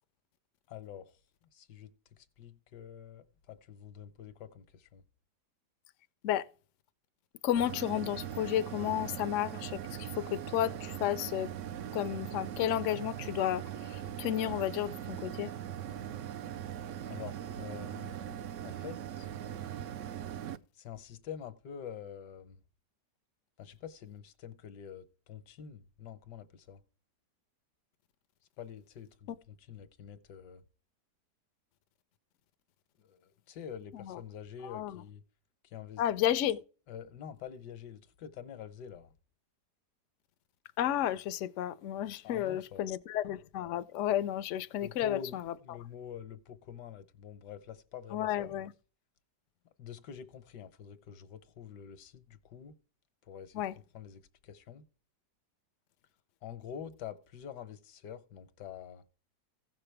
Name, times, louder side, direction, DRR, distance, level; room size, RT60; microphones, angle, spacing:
voice 1, 0.7-1.2 1.5-5.0 17.1-19.3 20.7-22.6 23.6-26.8 28.6-30.6 33.0-35.2 35.6-36.0 36.9-39.1 42.1-42.9 44.8-48.5 49.8-52.8 53.3-54.9 56.4-59.1, left 8 dB, 80° left, 1.5 m, -47 dB
voice 2, 7.4-11.5 11.9-15.5 33.9-34.2 34.6-35.0 36.0-36.6 40.8-45.8 48.1-48.7 53.5-53.7, left 11 dB, 65° left, 0.7 m, -32 dB
sound 1, 7.6-20.6, right 10 dB, 70° right, 0.7 m, -40 dB
16.0 x 5.8 x 3.3 m
omnidirectional pair, 1.8 m